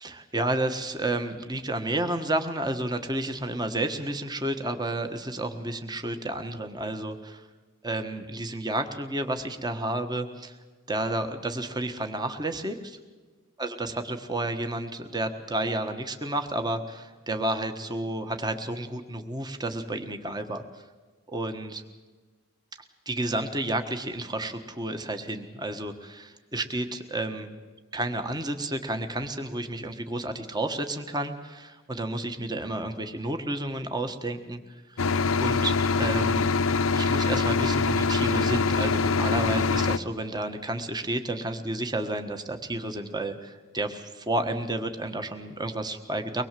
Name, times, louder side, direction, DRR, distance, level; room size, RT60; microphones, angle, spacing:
voice 1, 0.0-7.4 7.8-10.6 10.9-13.0 13.6-20.8 21.3-21.8 23.0-27.5 27.9-34.6 34.9-35.0 35.4-36.5 36.9-46.4, right 1 dB, 20° right, 7 dB, 1.4 m, -31 dB
sound 1, 35.0-40.0, left 4 dB, 75° left, 0.7 m, -24 dB
24.0 x 21.0 x 7.6 m, 1.3 s
head